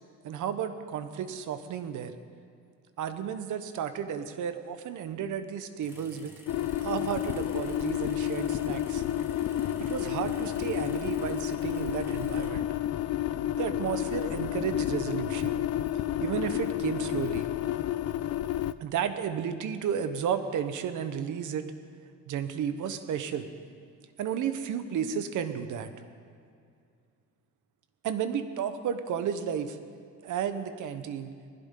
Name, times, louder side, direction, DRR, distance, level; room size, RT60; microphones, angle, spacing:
voice 1, 0.2-2.1 3.0-6.3 6.8-9.0 9.8-12.7 13.6-15.6 16.2-17.5 18.8-21.7 22.3-23.5 24.2-25.9 28.0-29.8 30.2-31.3, right 8 dB, 75° right, 10 dB, 1.1 m, -32 dB
sound 1, 5.8-12.5, equal, 10° right, 1.8 m, -53 dB
sound 2, 6.5-18.7, left 12 dB, 55° left, 0.5 m, -30 dB
20.0 x 15.5 x 3.8 m, 2.3 s
cardioid pair, 140°, 30 cm